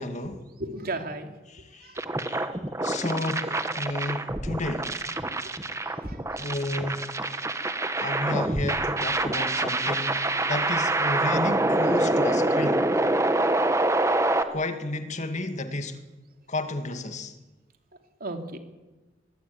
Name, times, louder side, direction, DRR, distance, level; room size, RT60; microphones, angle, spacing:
voice 1, 0.0-0.4 1.5-1.9 2.3-2.5 2.8-5.0 6.4-7.1 8.0-12.9 14.5-16.0 16.5-17.3, left 2 dB, 40° left, 8 dB, 2.2 m, -32 dB
voice 2, 0.6-1.3 1.8-2.0 5.9-6.5 7.8-7.9 10.4-10.6 18.2-18.6, right 2 dB, 55° right, 5 dB, 2.9 m, -36 dB
sound 1, 2.0-14.4, right 2 dB, 15° right, 1.4 m, -26 dB
23.0 x 20.5 x 9.5 m, 1.2 s
head